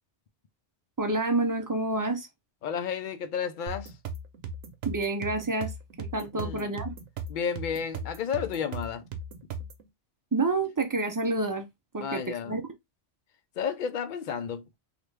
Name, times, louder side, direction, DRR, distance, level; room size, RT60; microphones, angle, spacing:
voice 1, 1.0-2.3 4.8-5.7 6.0-6.9 10.3-11.7 11.9-12.6, right 2 dB, 25° right, 0.4 m, -28 dB
voice 2, 2.6-3.9 6.3-6.7 7.3-9.0 12.0-12.6 13.6-14.6, left 7 dB, 55° left, 0.6 m, -32 dB
sound 1, 3.7-9.8, right 3 dB, 85° right, 1.0 m, -38 dB
3.2 x 2.5 x 3.2 m
omnidirectional pair, 1.2 m